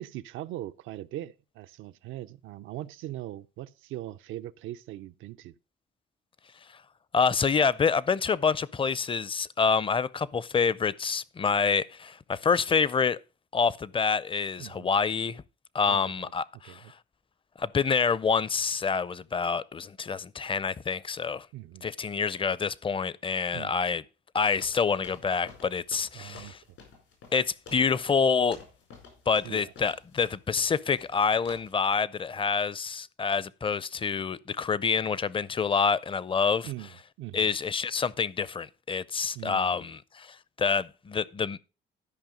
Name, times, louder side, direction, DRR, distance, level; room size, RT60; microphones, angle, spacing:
voice 1, 0.0-5.6 14.6-14.9 15.9-16.3 16.6-16.9 21.5-21.9 23.5-23.8 26.1-26.5 29.4-29.7 36.6-37.5 39.3-39.8, right 14 dB, 85° right, 0.5 m, -41 dB
voice 2, 7.1-13.2 13.5-15.4 15.7-16.8 17.6-21.5 21.8-24.0 24.3-26.6 27.3-28.6 29.3-36.7 37.3-41.6, left 5 dB, 25° left, 0.5 m, -27 dB
sound 1, 24.6-31.2 31.5-31.8, left 5 dB, 85° left, 4.9 m, -51 dB
12.0 x 5.4 x 5.1 m
cardioid pair, 90°, 20 cm